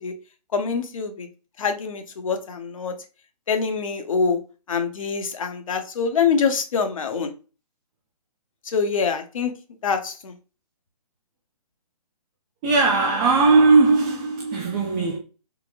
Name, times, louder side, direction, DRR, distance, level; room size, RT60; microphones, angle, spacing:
voice 1, 0.5-1.3 1.6-2.9 3.5-4.4 4.7-7.3 8.7-9.5 9.8-10.3, left 5 dB, 55° left, 0.7 m, -25 dB
voice 2, 12.6-15.2, right 3 dB, 10° right, 0.3 m, -18 dB
3.8 x 2.0 x 2.4 m
figure-of-eight pair, 135°, 20 cm